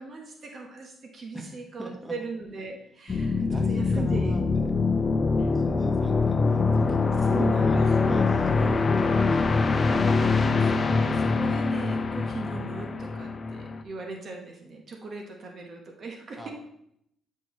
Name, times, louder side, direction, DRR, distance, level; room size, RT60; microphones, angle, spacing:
voice 1, 0.0-3.4 3.7-4.3 5.4-5.6 7.2-8.9 10.6-16.5, right 3 dB, 50° right, 2 dB, 1.2 m, -39 dB
voice 2, 1.8-2.1 3.4-5.1 5.4-9.8 16.4-16.5, equal, 5° right, 1 dB, 1.5 m, -41 dB
sound 1, 3.1-13.8, left 4 dB, 35° left, 0.6 m, -24 dB
11.5 x 4.6 x 3.2 m, 0.76 s
cardioid pair, 90°, 0 cm